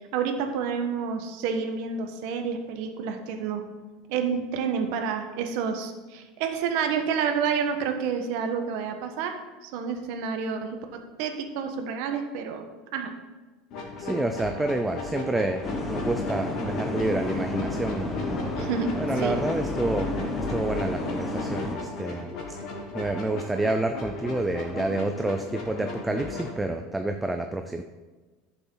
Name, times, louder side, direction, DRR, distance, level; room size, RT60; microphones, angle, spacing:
voice 1, 0.1-3.7 4.1-9.4 9.6-12.7 12.9-13.1 18.6-19.4, right 6 dB, 55° right, 5 dB, 1.2 m, -29 dB
sound 1, 13.7-26.5, left 3 dB, 40° left, 2.3 m, -37 dB
voice 2, 14.0-18.4 19.0-22.3 22.9-27.8, right 2 dB, 5° right, 6 dB, 0.4 m, -29 dB
sound 2, 15.6-21.8, left 2 dB, 15° left, 1.0 m, -31 dB
13.5 x 7.0 x 3.9 m, 1.3 s
cardioid pair, 175°, 0 cm